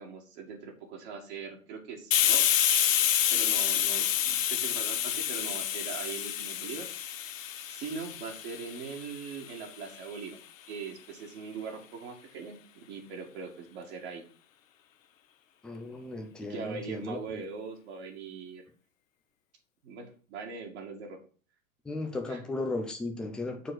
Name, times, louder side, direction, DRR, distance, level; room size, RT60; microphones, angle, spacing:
voice 1, 0.0-2.7 3.3-6.9 7.7-10.4 10.7-12.6 12.9-14.3 16.5-18.6 19.8-21.2 22.3-22.4, right 5 dB, 50° right, 0 dB, 2.3 m, -41 dB
Hiss, 2.1-9.5, left 10 dB, 65° left, 0.9 m, -28 dB
voice 2, 15.6-17.4 21.9-23.7, left 2 dB, ahead, 3 dB, 0.3 m, -36 dB
6.7 x 4.4 x 6.2 m, 0.40 s
figure-of-eight pair, 100°, 43 cm